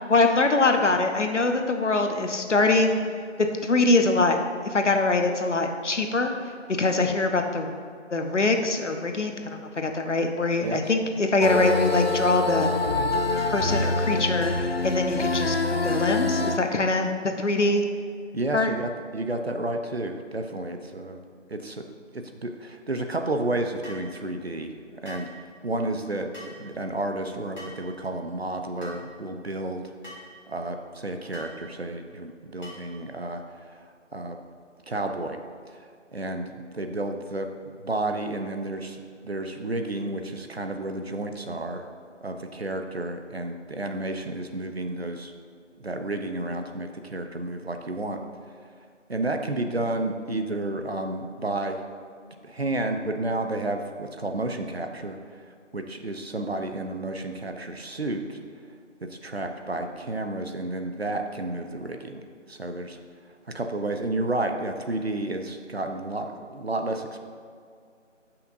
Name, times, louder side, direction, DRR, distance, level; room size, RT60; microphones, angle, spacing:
voice 1, 0.1-3.0 3.4-4.4 4.6-6.3 6.8-7.8 8.1-12.7 13.5-14.5 14.8-17.8 18.5-18.7, left 2 dB, 70° left, 5 dB, 0.9 m, -23 dB
sound 1, 11.4-16.6, left 3 dB, 55° left, 0.5 m, -25 dB
voice 2, 18.3-21.2 21.5-21.9 22.1-25.3 25.6-29.9 30.5-33.8 34.1-34.4 34.9-35.4 35.7-41.9 42.2-45.3 45.8-48.2 49.1-51.8 52.4-58.4 59.0-62.2 62.5-63.0 63.5-67.2, right 2 dB, 55° right, 5 dB, 0.7 m, -31 dB
sound 2, 23.8-24.1 25.0-25.3 26.3-26.6 27.6-27.8 28.8-29.0 30.0-30.3 31.3-31.5 32.6-32.9, left 1 dB, 35° left, 1.9 m, -43 dB
12.0 x 5.7 x 2.6 m, 2.2 s
figure-of-eight pair, 180°, 37 cm